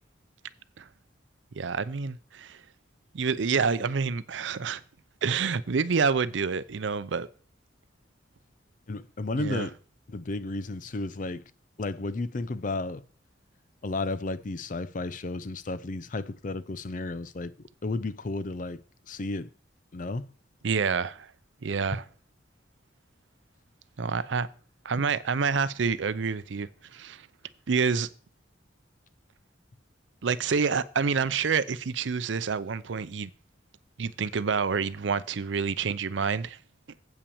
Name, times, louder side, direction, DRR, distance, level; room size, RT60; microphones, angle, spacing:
voice 1, 1.5-2.6 3.1-4.8 5.2-7.3 9.4-9.7 20.6-21.3 21.6-22.0 24.0-24.5 24.8-27.3 27.7-28.1 30.2-33.3 34.0-36.6, right 5 dB, 75° right, 0.5 m, -28 dB
voice 2, 8.9-9.7 10.1-11.4 11.8-13.0 13.8-17.5 17.8-19.5 19.9-20.3, left 2 dB, 45° left, 0.5 m, -33 dB
8.2 x 5.8 x 7.0 m
head